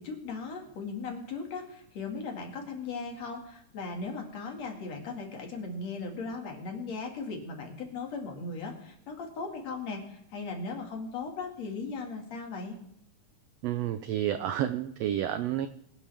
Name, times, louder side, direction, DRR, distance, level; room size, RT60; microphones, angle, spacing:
voice 1, 0.0-12.8, left 4 dB, 60° left, 2 dB, 3.3 m, -38 dB
voice 2, 13.6-15.7, right 11 dB, 90° right, 11 dB, 1.4 m, -30 dB
23.5 x 10.0 x 3.5 m, 0.72 s
omnidirectional pair, 3.6 m